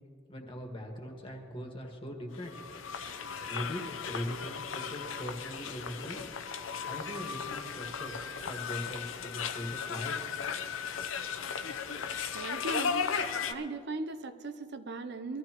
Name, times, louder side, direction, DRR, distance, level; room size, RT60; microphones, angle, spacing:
voice 1, 0.3-2.6 3.5-3.8 4.1-6.2 6.8-8.2 8.5-10.1, equal, 25° left, 1 dB, 1.6 m, -40 dB
sound 1, 2.3-13.5, left 6 dB, 85° left, 0.7 m, -36 dB
voice 2, 12.3-13.1 13.5-15.4, right 3 dB, 60° right, 10 dB, 0.6 m, -38 dB
22.5 x 14.0 x 3.0 m, 2.5 s
head